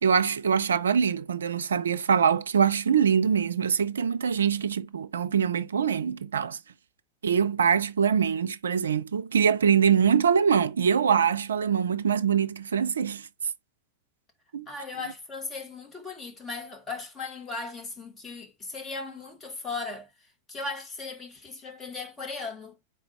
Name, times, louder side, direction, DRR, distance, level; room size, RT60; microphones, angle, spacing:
voice 1, 0.0-6.6 7.2-13.3 14.5-14.7, right 7 dB, 70° right, 0.4 m, -24 dB
voice 2, 14.7-22.7, left 3 dB, 20° left, 1.5 m, -37 dB
4.3 x 3.9 x 3.1 m
figure-of-eight pair, 90°, 0 cm